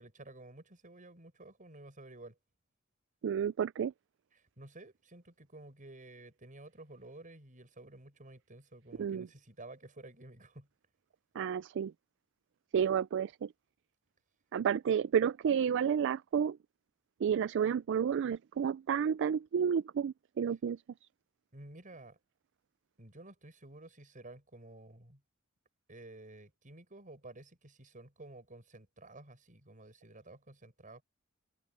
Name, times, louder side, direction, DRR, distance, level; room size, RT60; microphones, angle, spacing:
voice 1, 0.0-2.4 4.3-10.7 21.5-22.2 23.0-25.2 25.9-31.0, right 2 dB, 40° right, 6.7 m, -52 dB
voice 2, 3.2-3.9 9.0-9.3 11.4-11.9 12.7-13.5 14.5-16.6 17.2-20.8, right 7 dB, 60° right, 0.3 m, -31 dB
head